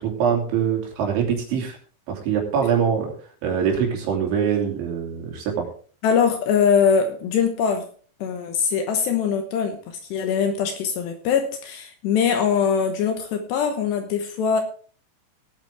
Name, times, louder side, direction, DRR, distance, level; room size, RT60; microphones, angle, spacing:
voice 1, 0.0-1.8 2.1-3.1 3.4-5.7, right 7 dB, 65° right, 1 dB, 5.0 m, -23 dB
voice 2, 6.0-7.9 8.2-14.6, left 6 dB, 75° left, 6 dB, 2.9 m, -22 dB
18.5 x 8.9 x 3.5 m, 0.43 s
omnidirectional pair, 5.8 m